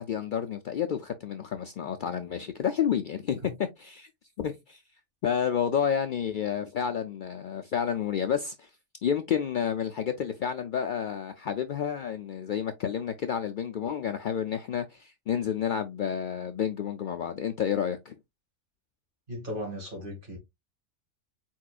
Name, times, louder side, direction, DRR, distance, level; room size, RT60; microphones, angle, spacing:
voice 1, 0.0-4.1 4.4-4.8 5.2-8.7 9.0-18.2, left 8 dB, 85° left, 0.4 m, -30 dB
voice 2, 19.3-20.4, equal, 40° right, 2.4 m, -36 dB
4.5 x 4.5 x 2.4 m
omnidirectional pair, 1.4 m